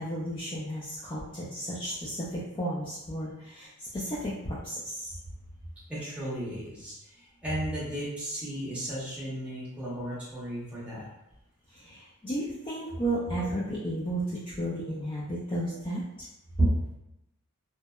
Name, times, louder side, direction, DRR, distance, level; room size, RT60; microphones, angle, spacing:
voice 1, 0.0-5.1 11.7-16.3, right 1 dB, 20° left, -8 dB, 0.3 m, -33 dB
voice 2, 5.9-11.1 13.4-13.5 16.6-16.7, right 1 dB, 5° right, -10 dB, 0.8 m, -33 dB
2.8 x 2.0 x 2.2 m, 0.87 s
head